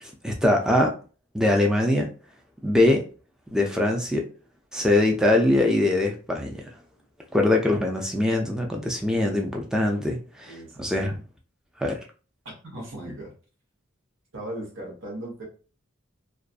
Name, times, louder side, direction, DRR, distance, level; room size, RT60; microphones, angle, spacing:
voice 1, 0.0-0.9 1.3-2.1 2.6-3.0 3.5-4.3 4.7-6.6 7.3-11.2 11.8-12.0, left 1 dB, 5° right, 0.4 m, -22 dB
voice 2, 10.4-11.1 12.4-13.3 14.3-15.4, right 1 dB, 70° right, 1.1 m, -38 dB
2.5 x 2.3 x 2.4 m
head